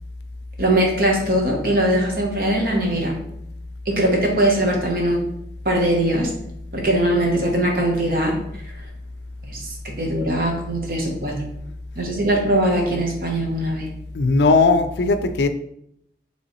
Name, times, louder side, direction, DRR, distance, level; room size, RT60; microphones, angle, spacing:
voice 1, 0.6-3.2 3.9-5.3 5.6-6.3 6.7-8.4 9.5-11.4 12.0-13.9, right 1 dB, 55° right, 1.0 m, -21 dB
voice 2, 14.1-15.5, left 3 dB, 75° left, 0.4 m, -17 dB
5.4 x 3.1 x 3.0 m
head